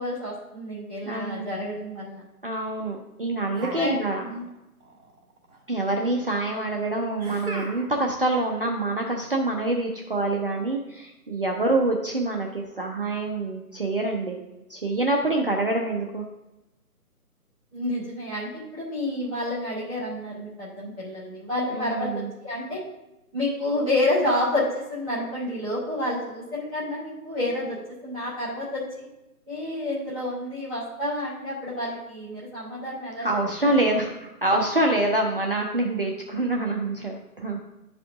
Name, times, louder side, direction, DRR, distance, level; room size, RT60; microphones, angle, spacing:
voice 1, 0.0-2.2 3.7-4.4 17.7-22.8 23.3-27.8 28.0-29.1 29.5-33.3 33.6-33.7, left 1 dB, ahead, -17 dB, 0.9 m, -29 dB
voice 2, 1.1-1.4 2.4-4.2 5.7-14.4 14.7-16.2 21.7-22.3 33.2-37.6, right 2 dB, 35° right, 1 dB, 0.6 m, -26 dB
sound 1, 3.5-4.6 4.8-5.6 7.2-8.1, right 2 dB, 60° right, 2.7 m, -38 dB
10.5 x 5.0 x 3.5 m, 0.93 s
figure-of-eight pair, 160°, 46 cm